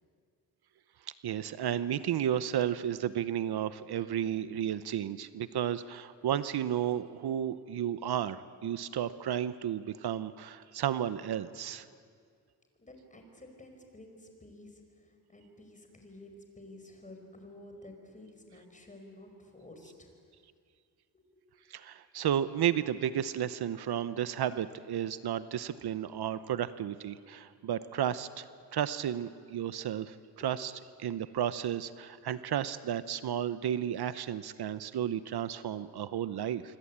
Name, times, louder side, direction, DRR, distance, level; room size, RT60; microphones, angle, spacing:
voice 1, 1.2-11.8 21.7-30.2 30.4-30.7 31.0-36.6, right 10 dB, 80° right, 14 dB, 0.9 m, -33 dB
voice 2, 12.8-20.3 21.1-21.2 25.8-25.9 30.4-30.5 35.6-35.7 35.9-36.0, left 1 dB, 20° left, 4 dB, 5.1 m, -52 dB
26.5 x 24.5 x 8.7 m, 2.2 s
wide cardioid pair, 115°, 38 cm